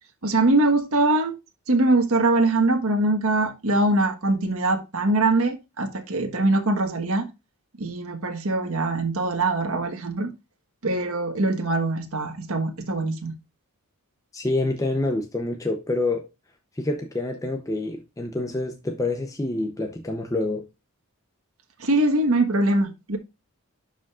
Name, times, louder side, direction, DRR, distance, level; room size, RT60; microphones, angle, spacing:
voice 1, 0.2-1.3 1.7-7.3 7.8-10.3 10.8-13.3 21.8-23.2, right 2 dB, 70° right, 1.4 m, -22 dB
voice 2, 14.3-16.3 16.8-20.6, left 2 dB, 15° left, 0.7 m, -27 dB
11.5 x 5.1 x 2.5 m
head